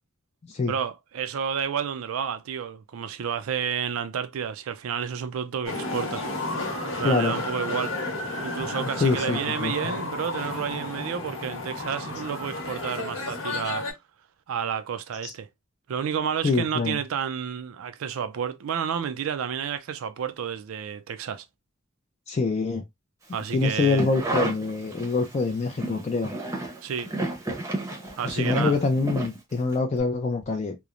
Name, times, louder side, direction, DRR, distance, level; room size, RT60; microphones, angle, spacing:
voice 1, 0.7-6.2 7.0-8.0 8.4-13.9 14.5-15.5 15.9-21.4 23.3-24.1 26.8-27.1 28.2-28.8, right 7 dB, 85° right, 0.4 m, -30 dB
sound 1, 5.6-13.9, left 2 dB, 80° left, 1.0 m, -32 dB
voice 2, 9.0-9.7 15.2-15.3 16.4-17.0 22.3-22.8 23.5-26.3 28.2-30.8, left 3 dB, 35° left, 0.3 m, -25 dB
sound 2, 23.7-25.3 25.7-29.7 30.0-30.1, right 2 dB, 15° right, 0.7 m, -31 dB
3.0 x 2.0 x 2.4 m
head